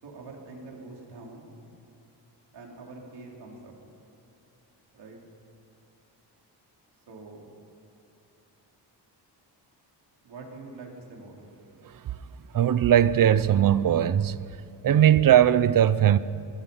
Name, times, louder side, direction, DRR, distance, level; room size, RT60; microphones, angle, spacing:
voice 1, 0.0-1.6 2.5-3.7 4.9-5.2 7.1-7.5 10.2-11.4, right 3 dB, 65° right, 4.2 m, -44 dB
voice 2, 12.5-14.4 14.8-16.2, right 10 dB, 50° right, 0.6 m, -19 dB
25.5 x 20.0 x 5.7 m
wide cardioid pair, 170°, 43 cm